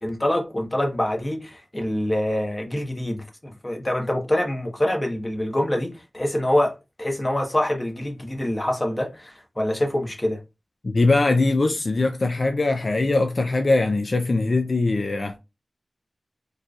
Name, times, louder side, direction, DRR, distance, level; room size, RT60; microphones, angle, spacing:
voice 1, 0.0-6.7 7.0-10.4, left 1 dB, 25° left, 1.1 m, -25 dB
voice 2, 10.8-15.4, left 2 dB, 60° left, 0.4 m, -21 dB
4.6 x 3.2 x 2.4 m
wide cardioid pair, 55°, 0 cm